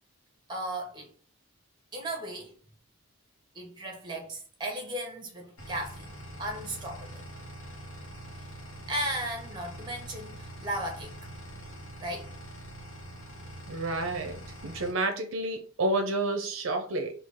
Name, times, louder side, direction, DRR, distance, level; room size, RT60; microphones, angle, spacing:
voice 1, 0.5-1.1 1.9-2.5 3.5-7.2 8.9-11.1 12.0-12.3, right 1 dB, 20° right, 1.0 m, -36 dB
sound 1, 5.6-14.9, right 1 dB, 80° left, 1.0 m, -44 dB
voice 2, 13.7-17.1, right 2 dB, 65° right, 0.5 m, -30 dB
3.8 x 2.3 x 3.4 m
head